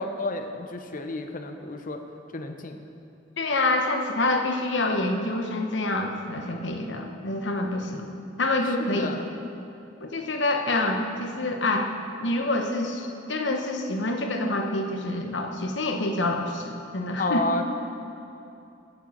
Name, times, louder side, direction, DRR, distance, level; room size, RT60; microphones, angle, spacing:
voice 1, 0.0-2.0 2.3-2.8 8.9-9.3 17.2-17.6, left 2 dB, 45° left, 6 dB, 0.8 m, -30 dB
voice 2, 3.4-8.1 8.4-9.3 10.0-11.9 12.2-17.6, left 2 dB, 70° left, 3 dB, 1.1 m, -27 dB
9.2 x 7.8 x 7.2 m, 2.7 s
head